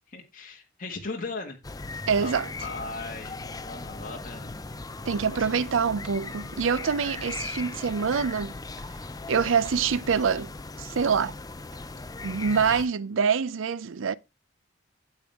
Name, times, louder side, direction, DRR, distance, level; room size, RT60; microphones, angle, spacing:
voice 1, 0.1-1.9 2.2-2.3 2.6-4.5 5.3-5.5, left 3 dB, 45° left, 1.8 m, -38 dB
sound 1, 1.6-12.9, left 3 dB, 20° left, 0.5 m, -38 dB
voice 2, 2.1-2.5 5.1-8.5 9.3-10.5 10.8-11.4 12.2-14.1, right 6 dB, 75° right, 0.5 m, -25 dB
8.6 x 8.1 x 3.5 m
head